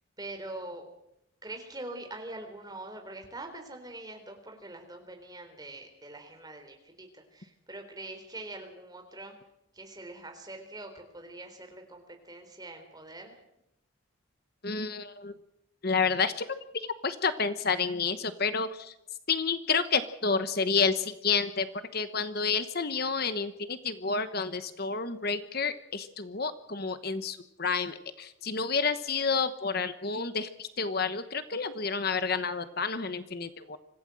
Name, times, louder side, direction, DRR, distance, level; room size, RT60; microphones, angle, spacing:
voice 1, 0.2-0.9 1.4-9.4 9.7-13.4, right 2 dB, 20° right, 4 dB, 3.8 m, -43 dB
voice 2, 14.6-15.3 15.8-16.5 16.7-18.9 19.3-21.7 21.9-33.8, left 5 dB, 50° left, 11 dB, 1.1 m, -30 dB
25.5 x 16.0 x 7.7 m, 0.85 s
head